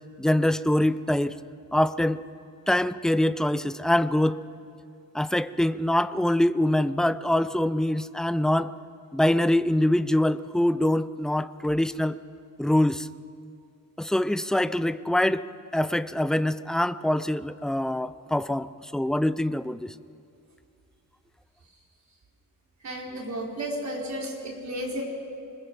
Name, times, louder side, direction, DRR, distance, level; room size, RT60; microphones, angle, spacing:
voice 1, 0.2-1.3 1.7-2.2 2.7-4.4 5.1-8.7 9.1-12.2 12.6-13.1 14.0-15.5 15.7-19.9, left 1 dB, ahead, 14 dB, 0.4 m, -24 dB
voice 2, 22.8-25.0, right 1 dB, 55° right, -1 dB, 4.2 m, -33 dB
25.5 x 21.5 x 5.2 m, 2.5 s
wide cardioid pair, 135°, 33 cm